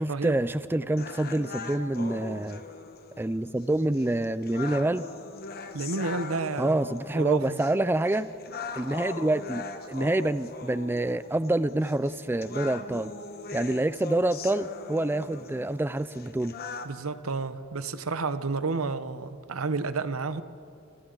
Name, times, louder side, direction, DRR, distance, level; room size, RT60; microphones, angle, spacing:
voice 1, 0.0-2.6 3.2-5.1 6.6-8.3 8.8-13.1 13.5-16.5, right 1 dB, 10° right, 14 dB, 0.4 m, -27 dB
sound 1, 1.0-17.0, left 4 dB, 45° left, 1.2 m, -41 dB
voice 2, 5.7-6.8 7.1-7.6 16.8-20.4, right 4 dB, 85° right, 13 dB, 0.9 m, -30 dB
28.0 x 25.0 x 3.9 m, 2.6 s
head